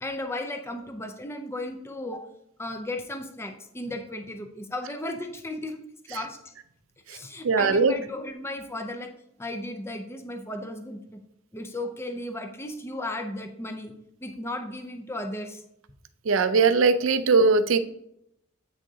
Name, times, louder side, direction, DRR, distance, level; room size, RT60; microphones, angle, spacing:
voice 1, 0.0-2.2 2.6-5.8 6.1-6.4 7.1-9.1 9.4-11.2 11.5-13.9 14.2-15.6, left 1 dB, 10° left, 6 dB, 0.5 m, -35 dB
voice 2, 7.4-7.9 16.3-17.8, right 4 dB, 70° right, 11 dB, 0.5 m, -20 dB
8.6 x 6.3 x 2.8 m, 0.76 s
head